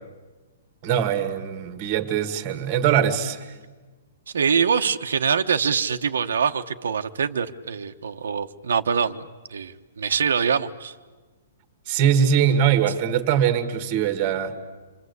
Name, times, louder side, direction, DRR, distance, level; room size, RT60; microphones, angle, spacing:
voice 1, 0.8-3.5 11.9-14.5, right 8 dB, 25° right, 9 dB, 1.6 m, -22 dB
voice 2, 4.3-10.9, right 6 dB, 90° right, 6 dB, 1.2 m, -24 dB
27.5 x 25.0 x 8.2 m, 1.3 s
hypercardioid pair, 180°, 0 cm